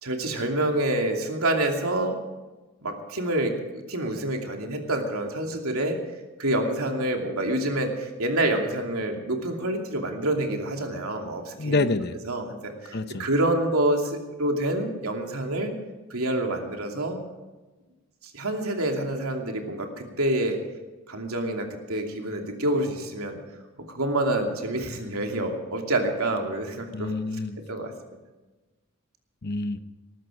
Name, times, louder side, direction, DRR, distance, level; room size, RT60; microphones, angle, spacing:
voice 1, 0.0-2.2 2.8-3.5 3.9-6.0 6.4-11.9 12.3-15.7 16.1-17.2 18.3-20.6 21.1-23.4 23.9-27.1 27.7-27.9, right 1 dB, 85° right, 2 dB, 2.8 m, -27 dB
voice 2, 11.6-12.2 12.9-13.3 26.9-27.6 29.4-29.8, left 3 dB, 50° left, 10 dB, 0.8 m, -27 dB
19.5 x 14.0 x 5.1 m, 1.2 s
head